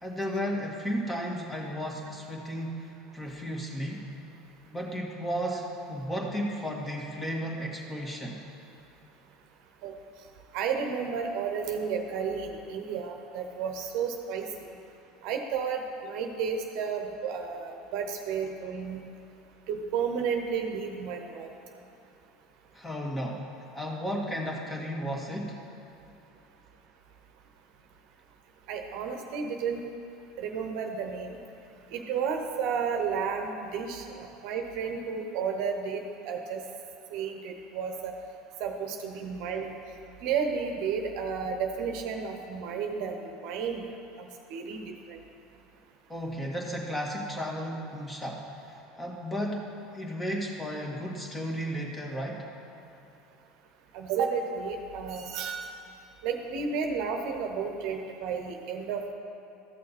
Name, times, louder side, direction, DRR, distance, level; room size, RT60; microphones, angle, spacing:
voice 1, 0.0-4.1 4.7-8.4 22.7-23.4 23.8-25.6 46.1-52.5, equal, 15° left, -1 dB, 1.9 m, -34 dB
voice 2, 10.5-14.7 15.2-19.0 19.7-21.5 28.7-29.8 30.4-31.4 31.9-36.6 37.1-38.1 38.6-39.7 40.2-43.9 44.2-45.2 53.9-55.7 56.2-59.1, right 6 dB, 65° right, 4 dB, 0.9 m, -32 dB
13.5 x 6.4 x 4.2 m, 2.8 s
hypercardioid pair, 80°, 0 cm